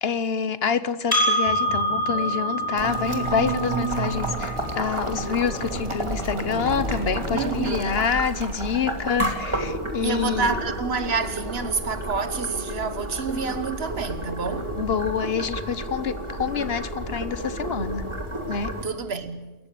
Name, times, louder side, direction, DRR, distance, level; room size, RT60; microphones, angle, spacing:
voice 1, 0.0-10.5 14.8-18.1 18.5-18.7, left 6 dB, 75° left, 1.3 m, -27 dB
Percussion, 1.1-5.9, equal, 20° left, 4.7 m, -27 dB
sound 1, 1.4-7.6, right 3 dB, 45° left, 8.2 m, -33 dB
Boiling, 2.8-18.8, right 1 dB, 30° right, 2.7 m, -31 dB
voice 2, 7.3-8.0 10.0-14.8 18.8-19.5, right 5 dB, 80° right, 1.6 m, -28 dB
27.0 x 14.5 x 8.5 m
omnidirectional pair, 1.0 m